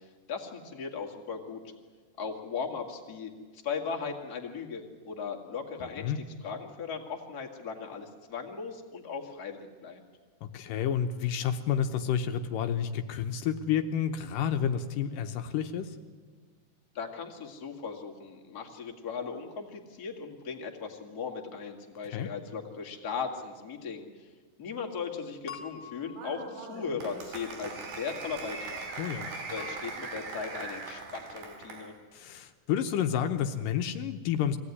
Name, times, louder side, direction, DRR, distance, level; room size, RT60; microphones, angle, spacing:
voice 1, 0.3-1.6 2.2-3.3 3.6-6.1 6.4-10.0 16.9-24.1 24.6-28.9 29.5-31.9, left 5 dB, 30° left, 1 dB, 2.1 m, -38 dB
voice 2, 10.5-16.0 22.0-22.3 29.0-29.3 32.1-34.6, left 8 dB, 80° left, 7 dB, 2.6 m, -30 dB
sound 1, 25.5-27.0 29.6-29.8, left 7 dB, 55° left, 2.2 m, -46 dB
Applause, 26.1-31.9, right 4 dB, 85° right, 4.5 m, -40 dB
23.0 x 16.5 x 9.8 m, 1.4 s
omnidirectional pair, 3.9 m